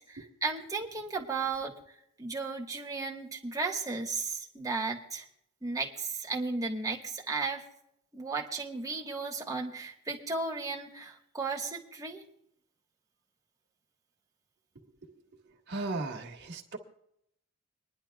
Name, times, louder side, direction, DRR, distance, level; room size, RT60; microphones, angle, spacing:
voice 1, 0.1-1.7 2.2-5.2 5.6-7.6 8.1-12.2, right 4 dB, 15° right, 0 dB, 1.4 m, -34 dB
voice 2, 15.7-16.8, right 2 dB, 55° right, 1 dB, 1.5 m, -36 dB
26.5 x 10.5 x 2.3 m, 0.74 s
head